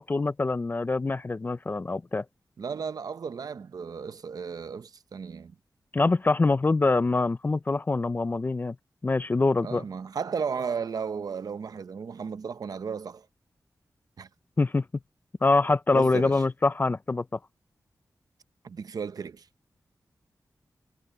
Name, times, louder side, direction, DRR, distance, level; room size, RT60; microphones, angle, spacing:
voice 1, 0.0-2.2 5.9-8.8 9.0-9.8 14.6-14.8 15.4-17.2, left 3 dB, 30° left, 0.4 m, -24 dB
voice 2, 2.6-5.6 9.6-13.3 14.2-14.3 15.9-16.4 18.6-19.5, right 6 dB, 65° right, 0.7 m, -34 dB
wide cardioid pair, 145°, 7 cm